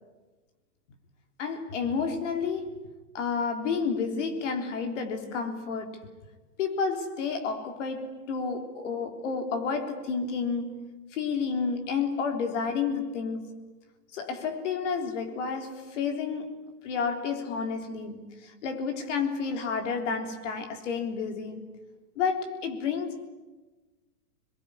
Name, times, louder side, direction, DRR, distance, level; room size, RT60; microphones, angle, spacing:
voice 1, 1.4-2.8 3.1-6.1 6.6-13.5 14.1-16.5 16.8-21.7 22.2-23.3, left 5 dB, 50° left, 3.7 m, -30 dB
26.5 x 22.5 x 9.9 m
supercardioid pair, 170°, 45 cm